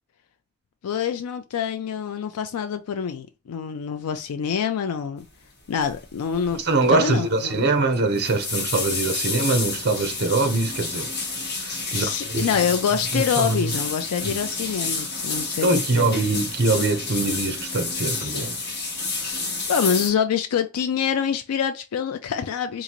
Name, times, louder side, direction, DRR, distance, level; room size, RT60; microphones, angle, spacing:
voice 1, 0.8-5.2 5.7-6.6 6.9-7.7 11.9-16.1 18.1-18.5 19.7-22.8, left 7 dB, 85° left, 0.4 m, -26 dB
sound 1, 5.8-6.0 6.3-6.6 6.9-7.0 7.9-20.1, left 3 dB, 45° left, 1.3 m, -30 dB
voice 2, 6.6-11.1 11.6-12.5 13.1-13.7 14.2-14.4 15.6-18.6, right 3 dB, 45° right, 0.7 m, -23 dB
3.8 x 2.5 x 2.9 m
head